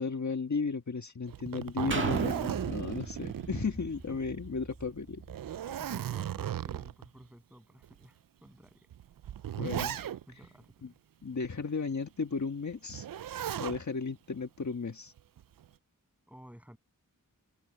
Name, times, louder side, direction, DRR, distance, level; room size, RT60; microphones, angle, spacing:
voice 1, 0.0-5.2 9.6-10.0 11.2-13.1 13.6-15.1, left 4 dB, 55° left, 1.6 m, -34 dB
Zipper (clothing), 1.3-4.2 4.6-4.7 5.2-7.1 7.8-7.9 8.9-10.5 12.9-13.8 15.2-15.7, right 10 dB, 80° right, 0.5 m, -36 dB
sound 1, 1.9-5.7 6.2-6.3, right 3 dB, 35° right, 1.9 m, -38 dB
voice 2, 5.6-8.9 9.6-9.8 10.3-11.0 16.3-16.8, equal, 5° right, 7.7 m, -54 dB
wide cardioid pair, 80°, 33 cm